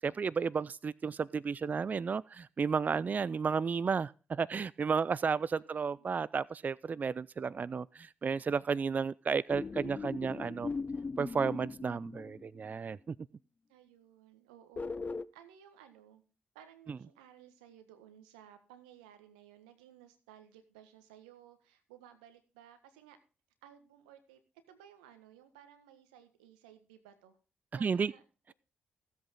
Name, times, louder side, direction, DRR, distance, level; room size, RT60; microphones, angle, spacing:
voice 1, 0.0-10.7 11.2-13.2 16.9-17.0 27.8-28.1, right 5 dB, 40° right, 0.4 m, -33 dB
voice 2, 5.5-6.1 13.7-14.9 15.3-16.2 16.5-23.2 23.6-24.4 24.7-27.4 27.7-28.2, right 10 dB, 85° right, 1.5 m, -57 dB
HV-bruit-primordiale, 9.5-12.7 14.8-15.3, left 4 dB, 35° left, 0.7 m, -39 dB
15.5 x 8.1 x 3.8 m
hypercardioid pair, 45°, 4 cm